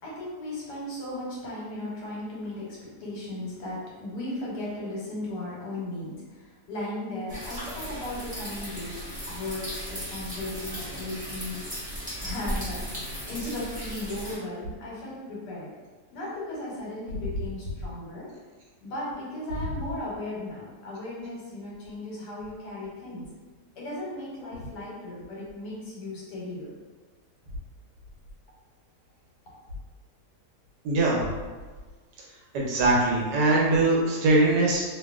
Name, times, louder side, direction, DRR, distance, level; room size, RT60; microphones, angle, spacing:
voice 1, 0.0-11.9 12.2-15.7 16.1-18.3 18.8-23.3 23.8-26.7, left 1 dB, 80° left, -6 dB, 1.4 m, -36 dB
sound 1, 7.3-14.4, equal, 5° right, 0.8 m, -36 dB
voice 2, 30.8-31.2 32.5-34.8, right 2 dB, 85° right, -3 dB, 1.3 m, -22 dB
2.9 x 2.4 x 2.3 m, 1.3 s
omnidirectional pair, 1.7 m